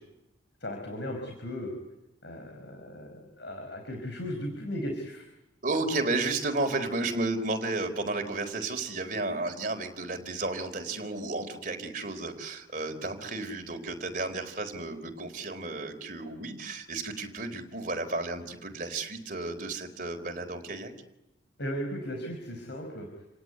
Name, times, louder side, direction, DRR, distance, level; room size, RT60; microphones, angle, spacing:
voice 1, 0.6-1.8 2.2-5.2 21.6-23.1, equal, 65° left, 4 dB, 5.0 m, -36 dB
voice 2, 5.6-20.9, right 2 dB, 45° right, 5 dB, 4.2 m, -33 dB
29.0 x 18.0 x 9.5 m, 0.97 s
head